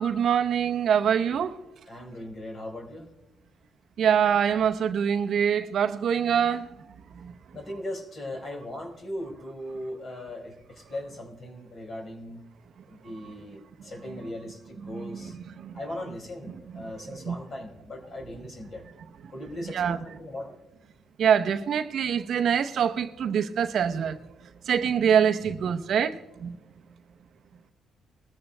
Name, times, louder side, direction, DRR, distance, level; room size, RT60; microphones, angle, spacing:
voice 1, 0.0-1.6 4.0-6.7 7.2-7.3 14.8-15.7 16.7-17.4 19.7-20.0 21.2-24.2 24.7-26.6, right 8 dB, 65° right, 0.7 m, -25 dB
voice 2, 1.9-3.1 7.5-12.4 12.9-15.4 15.7-18.8 19.3-20.6, left 1 dB, 45° left, 4.2 m, -38 dB
21.5 x 14.0 x 2.2 m
cardioid pair, 90°, 0 cm